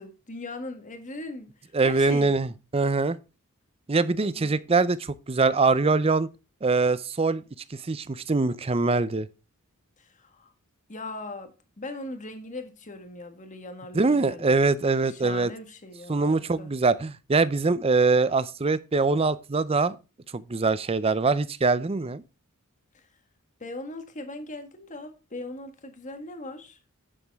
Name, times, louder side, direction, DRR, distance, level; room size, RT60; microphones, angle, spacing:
voice 1, 0.0-2.3 4.2-4.5 10.0-10.5 10.9-11.5 11.8-16.7 22.9-23.0 23.6-26.8, left 2 dB, 35° left, 1.6 m, -40 dB
voice 2, 1.7-3.2 3.9-6.3 6.6-7.4 7.7-9.3 13.9-15.5 16.1-20.0 20.3-22.2, right 3 dB, 25° right, 0.5 m, -23 dB
10.0 x 7.3 x 3.5 m
head